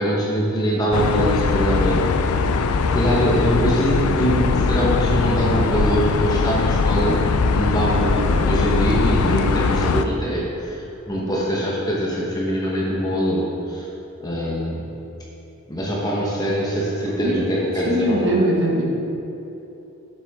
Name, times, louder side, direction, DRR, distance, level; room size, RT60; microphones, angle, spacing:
voice 1, 0.0-2.0 2.9-7.2 7.5-10.4 10.7-10.8 11.1-13.9 14.2-14.8 15.7-18.4, equal, 15° left, -5 dB, 1.1 m, -23 dB
sound 1, 0.9-10.0, left 4 dB, 80° left, 0.4 m, -20 dB
voice 2, 17.9-18.8, equal, 55° right, -3 dB, 1.6 m, -20 dB
8.2 x 7.5 x 3.6 m, 3.0 s
head